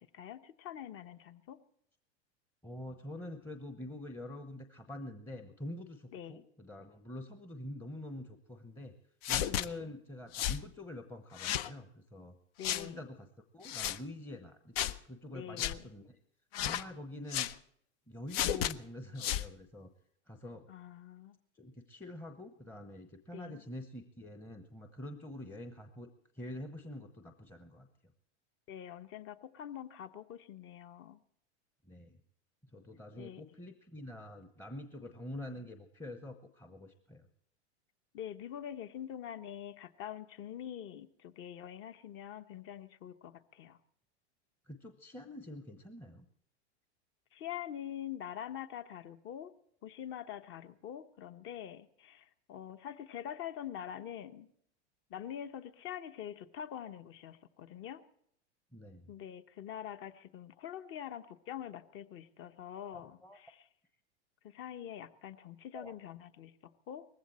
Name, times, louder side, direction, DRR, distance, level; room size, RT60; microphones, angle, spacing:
voice 1, 0.0-1.6 6.1-6.4 9.6-9.9 12.6-13.1 15.3-15.9 20.7-21.4 23.3-23.6 28.7-31.2 33.2-33.4 38.1-43.8 47.3-49.5 49.8-54.5 55.1-58.0 59.1-63.7 64.4-67.1, left 10 dB, 35° left, 11 dB, 1.1 m, -45 dB
voice 2, 2.6-8.9 9.3-12.4 12.7-13.3 13.5-16.2 16.6-17.5 18.1-19.9 20.3-20.7 21.5-27.9 31.9-32.2 32.7-37.3 44.7-46.2 58.7-59.1 62.9-63.4 65.7-65.9, left 1 dB, 5° left, 7 dB, 0.9 m, -46 dB
sound 1, 9.2-9.7 10.3-10.6 11.4-11.7 12.6-12.9 13.6-14.0 14.8-15.0 15.6-15.8 16.5-16.9 17.3-17.5 18.3-18.7 19.2-19.5, left 11 dB, 55° left, 0.8 m, -33 dB
19.5 x 15.5 x 4.3 m, 0.68 s
hypercardioid pair, 110°, 35 cm